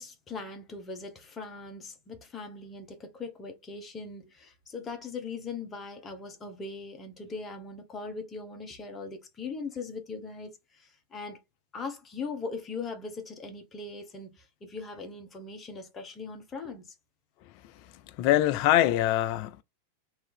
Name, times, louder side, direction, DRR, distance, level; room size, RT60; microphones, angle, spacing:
voice 1, 0.0-11.4 11.7-16.9, left 4 dB, 20° left, 1.0 m, -40 dB
voice 2, 17.8-19.6, left 13 dB, 45° left, 0.4 m, -24 dB
3.1 x 2.6 x 3.5 m
figure-of-eight pair, 90°, 0 cm